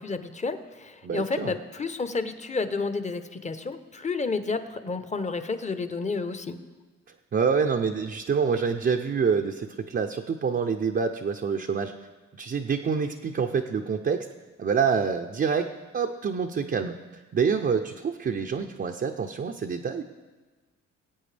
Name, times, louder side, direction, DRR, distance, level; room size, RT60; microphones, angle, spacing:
voice 1, 0.0-6.6, left 4 dB, 25° left, 10 dB, 0.8 m, -31 dB
voice 2, 1.0-1.5 7.3-11.9 12.4-14.3 14.6-16.9 17.3-20.0, right 6 dB, 35° right, 3 dB, 0.6 m, -26 dB
20.5 x 8.6 x 3.4 m, 1.3 s
cardioid pair, 90°, 30 cm